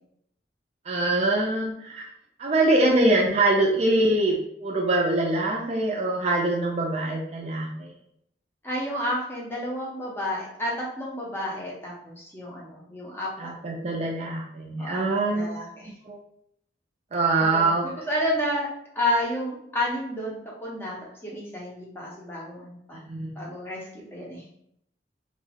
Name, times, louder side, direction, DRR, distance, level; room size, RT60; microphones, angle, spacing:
voice 1, 0.9-2.0 2.4-7.9 13.4-15.6 16.1-16.2 17.1-17.9 23.1-23.3, right 2 dB, 35° right, -1 dB, 0.4 m, -24 dB
voice 2, 8.6-13.5 14.8-15.0 15.3-15.9 17.4-18.7 18.9-23.0 23.4-24.4, left 1 dB, 15° left, -4 dB, 0.6 m, -31 dB
2.3 x 2.2 x 3.3 m, 0.73 s
head